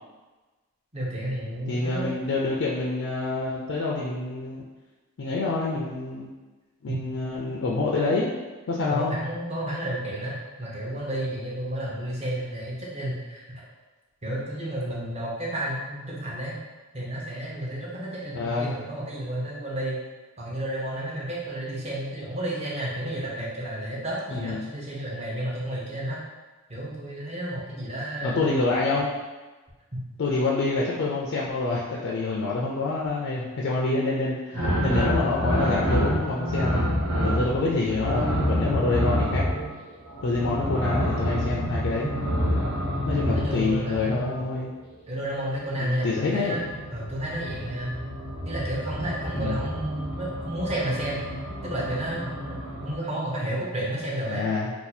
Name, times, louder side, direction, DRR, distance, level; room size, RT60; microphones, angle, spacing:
voice 1, 0.9-2.2 6.9-7.0 8.9-13.6 14.2-16.5 16.9-20.0 20.4-26.2 26.7-28.4 34.5-34.9 43.3-44.3 45.1-48.0 48.4-51.2 51.6-54.5, right 1 dB, 30° right, -5 dB, 0.8 m, -31 dB
voice 2, 1.7-4.6 5.2-6.3 6.8-8.3 8.7-9.1 18.3-18.7 24.3-24.6 28.2-29.1 30.2-36.8 37.2-39.5 40.2-42.1 43.1-44.7 45.8-46.6 49.3-49.7 54.3-54.7, left 3 dB, 60° left, -4 dB, 0.4 m, -27 dB
sound 1, 34.5-44.5 46.1-52.9, equal, 85° right, 0.9 m, -28 dB
2.6 x 2.3 x 4.1 m, 1.2 s
head